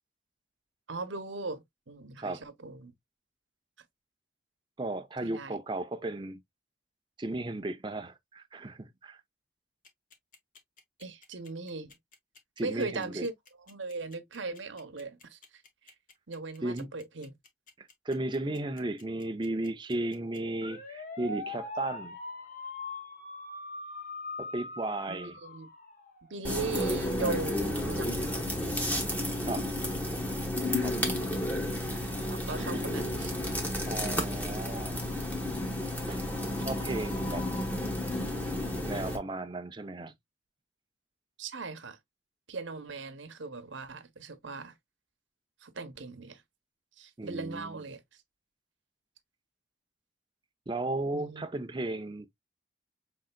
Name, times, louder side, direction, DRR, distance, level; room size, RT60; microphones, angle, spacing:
voice 1, 0.9-2.9 5.2-5.6 11.0-12.0 12.6-13.3 13.7-15.9 16.3-17.3 25.1-25.7 26.3-28.4 31.0-31.4 32.1-33.3 41.4-42.0 42.5-44.7 45.6-46.4 47.0-48.0 51.1-51.5, right 3 dB, 85° right, 0.9 m, -39 dB
voice 2, 4.8-6.4 7.2-9.2 12.6-13.3 16.6-16.9 17.8-22.2 24.4-25.4 29.4-29.7 30.6-31.0 32.6-32.9 33.9-35.0 36.1-36.2 36.6-37.5 38.8-40.1 47.2-47.8 50.7-52.3, right 2 dB, 25° right, 0.5 m, -35 dB
sound 1, 9.9-26.3, left 2 dB, 45° left, 1.1 m, -42 dB
sound 2, 26.4-39.2, left 1 dB, 10° left, 1.1 m, -32 dB
5.4 x 3.8 x 2.2 m
head